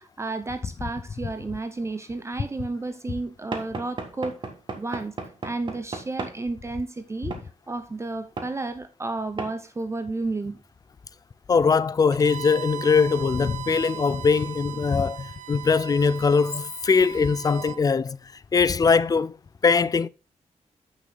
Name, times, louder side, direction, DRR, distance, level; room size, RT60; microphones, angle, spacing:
voice 1, 0.0-4.4 4.7-5.1 5.4-7.3 7.7-10.6, right 3 dB, 20° right, 0.7 m, -32 dB
Knock / Wood, 3.5-6.4 7.3-7.5 8.4-8.5 9.4-9.6, right 3 dB, 40° right, 1.6 m, -35 dB
voice 2, 11.5-18.2 18.5-19.3 19.6-20.1, left 5 dB, 30° left, 0.4 m, -21 dB
Bowed string instrument, 12.1-17.8, right 15 dB, 90° right, 0.6 m, -38 dB
8.1 x 6.2 x 3.9 m
wide cardioid pair, 125°, 12 cm